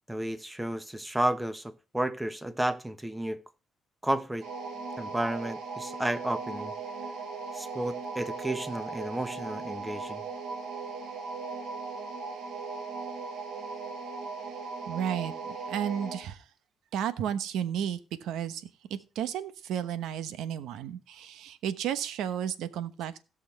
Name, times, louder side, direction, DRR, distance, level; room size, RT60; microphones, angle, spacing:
voice 1, 0.1-3.4 4.0-4.4 5.0-6.7 7.5-10.2, right 1 dB, 10° right, 1.2 m, -32 dB
sound 1, 4.4-16.3, right 4 dB, 70° right, 3.8 m, -38 dB
voice 2, 14.9-16.4 16.9-23.2, right 9 dB, 85° right, 1.1 m, -33 dB
17.0 x 6.3 x 3.4 m
cardioid pair, 90°, 0 cm